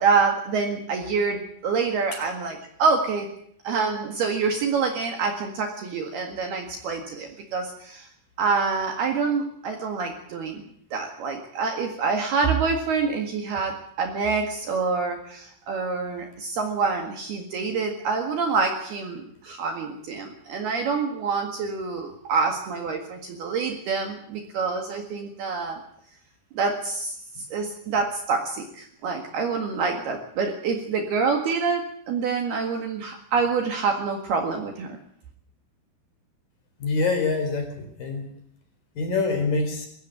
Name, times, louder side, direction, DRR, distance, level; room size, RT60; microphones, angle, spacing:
voice 1, 0.0-3.3 3.6-8.1 8.4-10.6 10.9-25.8 26.5-27.1 27.5-35.0, right 5 dB, 60° right, 3 dB, 3.4 m, -26 dB
voice 2, 36.8-38.3 39.0-39.9, left 4 dB, 45° left, 6 dB, 5.5 m, -25 dB
22.0 x 15.0 x 9.2 m, 0.67 s
omnidirectional pair, 5.9 m